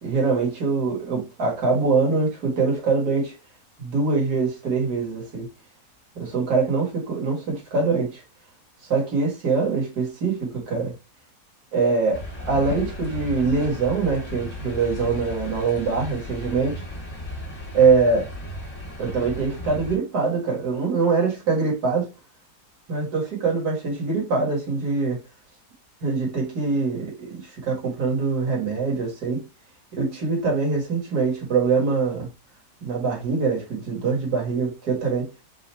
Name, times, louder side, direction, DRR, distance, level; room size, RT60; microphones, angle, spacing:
voice 1, 0.0-3.3 3.8-5.5 6.2-8.2 8.9-10.9 11.7-16.8 17.7-18.3 19.0-22.1 22.9-25.2 26.0-29.4 29.9-32.3 32.8-35.3, right 4 dB, 65° right, 2.2 m, -23 dB
sound 1, 12.1-20.0, left 1 dB, 45° left, 2.1 m, -35 dB
4.8 x 2.5 x 4.4 m
omnidirectional pair, 1.8 m